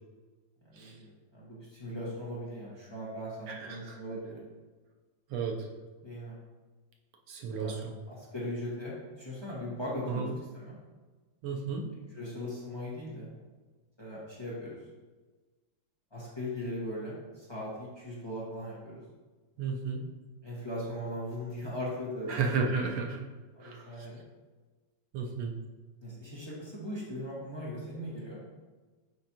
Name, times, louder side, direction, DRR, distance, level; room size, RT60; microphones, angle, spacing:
voice 1, 0.7-4.4 6.0-6.4 7.5-7.7 8.1-10.3 10.5-10.7 12.1-13.3 14.0-14.8 16.1-19.0 20.4-22.4 23.5-24.2 26.0-28.4, equal, 15° left, -8 dB, 1.4 m, -39 dB
voice 2, 3.5-4.0 5.3-5.5 7.3-7.9 10.1-10.3 11.4-11.8 19.6-20.0 22.3-23.2 23.6-23.8 25.1-25.5, right 5 dB, 90° right, 1 dB, 1.6 m, -33 dB
6.3 x 5.5 x 2.9 m, 1.3 s
omnidirectional pair, 2.2 m